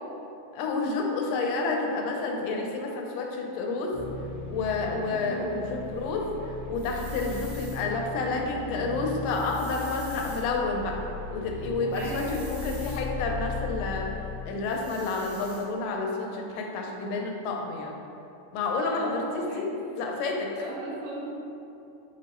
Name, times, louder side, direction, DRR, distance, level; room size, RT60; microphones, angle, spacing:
voice 1, 0.5-4.0 4.5-11.0 11.3-14.1 14.5-18.0 18.5-19.7 20.0-20.5, left 3 dB, 90° left, 1 dB, 2.2 m, -30 dB
sound 1, 3.9-15.5, left 3 dB, 65° left, 1.2 m, -38 dB
voice 2, 5.1-5.4 11.9-12.4 18.8-19.8 20.5-21.3, right 1 dB, 80° right, -7 dB, 2.6 m, -37 dB
sound 2, 6.8-7.8 9.2-10.4 11.9-13.0 14.7-15.6, right 2 dB, 65° right, 1.5 m, -47 dB
5.7 x 2.1 x 4.2 m, 2.7 s
omnidirectional pair, 3.8 m